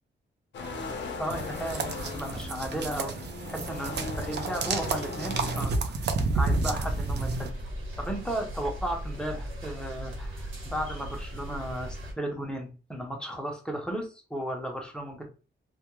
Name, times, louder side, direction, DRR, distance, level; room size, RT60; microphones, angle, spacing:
sound 1, 0.5-5.6, left 3 dB, 65° left, 0.6 m, -38 dB
voice 1, 1.2-3.1 3.5-7.5 8.0-15.2, right 1 dB, 5° left, 1 dB, 0.5 m, -35 dB
sound 2, 1.3-7.5, right 3 dB, 60° right, 0.4 m, -31 dB
sound 3, 6.5-12.1, equal, 85° right, 1.0 m, -38 dB
2.2 x 2.1 x 2.9 m, 0.34 s
wide cardioid pair, 180°, 20 cm